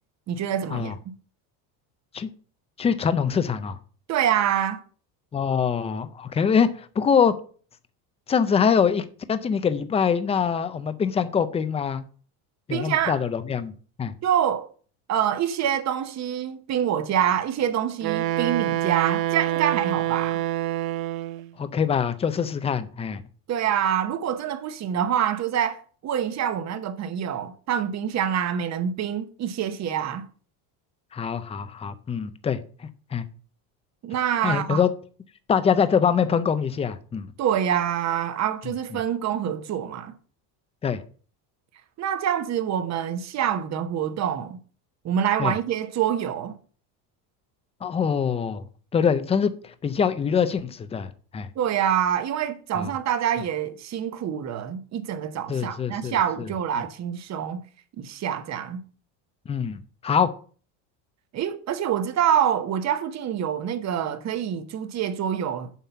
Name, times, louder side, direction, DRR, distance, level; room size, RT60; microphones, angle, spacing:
voice 1, 0.3-0.9 4.1-4.8 12.7-13.2 14.2-14.7 15.1-20.4 23.5-30.3 34.0-34.8 37.4-40.1 42.0-44.6 45.0-46.6 51.6-57.6 58.0-58.8 61.3-65.7, right 9 dB, 35° right, 0.9 m, -26 dB
voice 2, 2.8-3.8 5.3-7.3 8.3-12.0 12.7-13.7 14.0-14.1 21.6-23.2 31.1-32.6 33.1-33.2 34.4-34.9 35.5-37.3 38.7-39.0 40.8-41.0 45.4-45.5 47.8-48.6 48.9-51.5 52.8-52.9 55.5-56.5 59.5-60.3, left 7 dB, 15° left, 0.3 m, -24 dB
Wind instrument woodwind instrument, 18.0-21.5, right 15 dB, 50° right, 0.5 m, -26 dB
7.4 x 5.5 x 5.6 m
cardioid pair, 140°, 48 cm